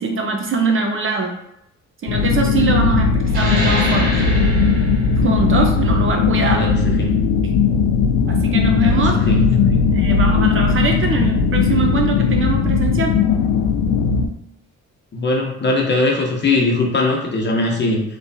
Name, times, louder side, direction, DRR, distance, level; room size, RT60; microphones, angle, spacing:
voice 1, 0.0-1.3 2.0-4.2 5.2-6.7 8.3-9.3 9.9-13.1 16.1-16.2, right 4 dB, 45° right, 2 dB, 0.6 m, -22 dB
sound 1, 2.1-14.3, left 5 dB, 80° left, 0.4 m, -17 dB
sound 2, 3.3-8.4, right 1 dB, 80° right, 1.4 m, -28 dB
voice 2, 6.5-7.1 8.8-9.4 15.1-18.0, left 2 dB, 35° left, 0 dB, 0.9 m, -20 dB
3.4 x 3.1 x 2.7 m, 0.78 s
cardioid pair, 90°, 30 cm